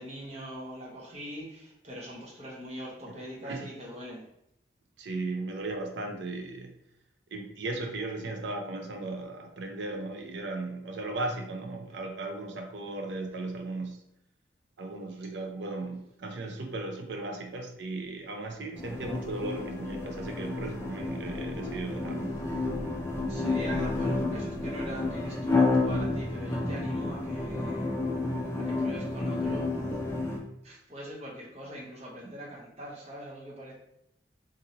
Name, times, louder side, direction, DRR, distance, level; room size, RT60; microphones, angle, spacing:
voice 1, 0.0-4.3 22.5-22.6 23.3-27.9 28.5-29.7 30.6-33.7, equal, 35° right, -4 dB, 0.7 m, -42 dB
voice 2, 5.0-6.7 7.3-14.0 14.8-22.4, right 2 dB, 70° right, 4 dB, 0.5 m, -36 dB
sound 1, 18.7-30.4, left 2 dB, 15° left, 0.4 m, -30 dB
2.6 x 2.6 x 2.8 m, 0.78 s
head